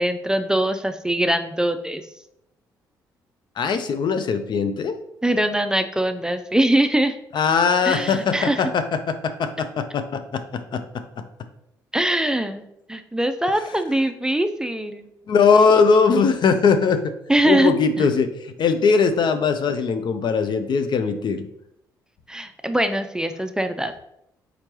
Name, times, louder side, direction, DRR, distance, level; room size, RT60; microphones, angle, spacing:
voice 1, 0.0-2.1 5.2-7.2 7.8-8.6 11.9-12.6 12.9-15.1 17.3-18.1 22.3-23.9, right 1 dB, 5° right, 8 dB, 0.4 m, -22 dB
voice 2, 3.6-5.0 7.3-10.8 11.2-11.3 15.3-17.1 17.5-21.5, left 5 dB, 50° left, 9 dB, 0.5 m, -20 dB
4.4 x 3.9 x 3.0 m, 0.80 s
hypercardioid pair, 45°, 10 cm